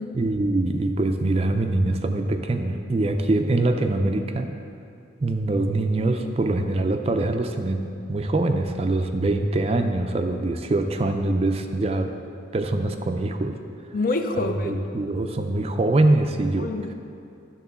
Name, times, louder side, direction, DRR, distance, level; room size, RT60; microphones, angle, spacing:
voice 1, 0.1-4.5 5.2-12.1 12.5-13.6 14.3-16.7, right 2 dB, 30° right, 6 dB, 0.4 m, -23 dB
voice 2, 13.9-14.9 16.6-16.9, left 3 dB, 45° left, 6 dB, 0.5 m, -27 dB
11.0 x 3.7 x 6.9 m, 2.6 s
head